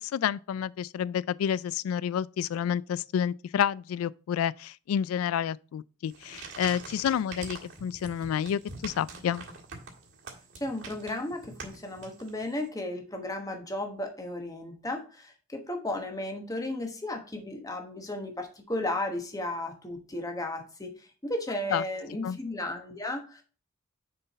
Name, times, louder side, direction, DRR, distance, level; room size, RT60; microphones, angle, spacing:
voice 1, 0.0-9.4 21.7-21.8 22.2-22.4, left 8 dB, 90° left, 0.3 m, -29 dB
sound 1, 6.0-12.6, right 4 dB, 65° right, 1.7 m, -45 dB
voice 2, 10.6-23.4, left 1 dB, 15° left, 1.1 m, -34 dB
6.5 x 4.6 x 4.1 m
head